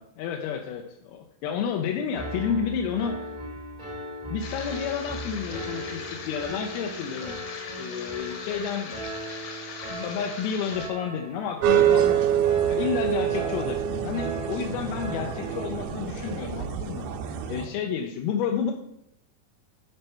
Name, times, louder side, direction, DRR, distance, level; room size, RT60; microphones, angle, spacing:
voice 1, 0.0-3.4 4.3-7.4 7.8-9.1 9.4-12.4 12.7-17.1 17.5-18.7, left 7 dB, 80° left, 2 dB, 2.3 m, -31 dB
Piano, 2.1-15.8, right 1 dB, 45° right, 0.5 m, -38 dB
sound 1, 4.4-10.9, left 5 dB, 65° left, 2.3 m, -40 dB
sound 2, 11.6-17.7, right 10 dB, 80° right, 2.4 m, -25 dB
9.0 x 4.2 x 5.6 m, 0.78 s
omnidirectional pair, 4.9 m